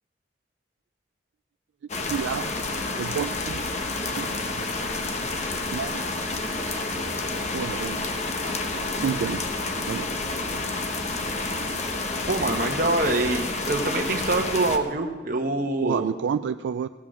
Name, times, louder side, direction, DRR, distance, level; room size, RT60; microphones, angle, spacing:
sound 1, 1.9-14.8, left 3 dB, 40° left, 0.9 m, -29 dB
voice 1, 2.0-2.5 3.0-3.7 4.2-4.3 4.5-4.7 5.7-6.0 6.6-6.7 7.5-8.0 9.0-9.5 9.9-10.1 15.8-16.9, right 7 dB, 85° right, 10 dB, 0.3 m, -29 dB
voice 2, 12.3-16.1, right 2 dB, 50° right, 3 dB, 0.9 m, -25 dB
17.0 x 8.3 x 6.3 m, 1.4 s
head